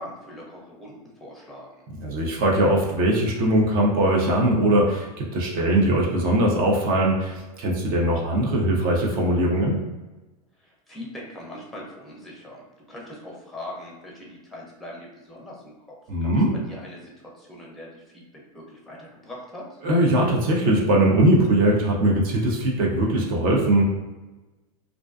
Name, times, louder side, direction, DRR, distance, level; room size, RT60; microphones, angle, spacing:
voice 1, 0.0-1.8 10.6-12.6 12.9-16.0 16.2-16.3 16.7-19.7, left 1 dB, ahead, -3 dB, 0.7 m, -41 dB
voice 2, 2.0-9.8 16.1-16.5 19.8-23.8, right 1 dB, 45° right, -1 dB, 0.6 m, -21 dB
2.4 x 2.2 x 2.5 m, 1.1 s
hypercardioid pair, 105°, 20 cm